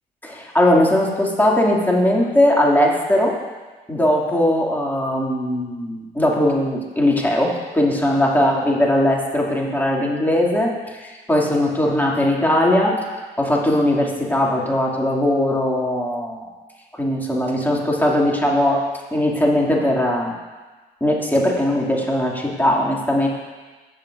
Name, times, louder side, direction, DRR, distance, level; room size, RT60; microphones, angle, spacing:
voice 1, 0.3-3.4 3.9-13.0 13.4-16.5 16.9-18.8 19.1-20.3 21.0-23.3, left 1 dB, 10° left, -3 dB, 2.5 m, -19 dB
15.5 x 6.6 x 2.6 m, 1.3 s
hypercardioid pair, 55°, 21 cm